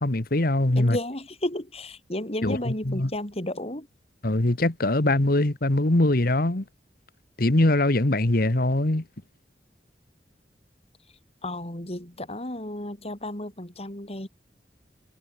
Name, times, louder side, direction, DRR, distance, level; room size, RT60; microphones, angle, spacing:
voice 1, 0.0-1.0 2.4-3.1 4.2-6.6 7.4-9.0, left 1 dB, 55° left, 1.6 m, -22 dB
voice 2, 0.7-3.9 11.4-14.3, left 1 dB, 35° left, 5.0 m, -33 dB
head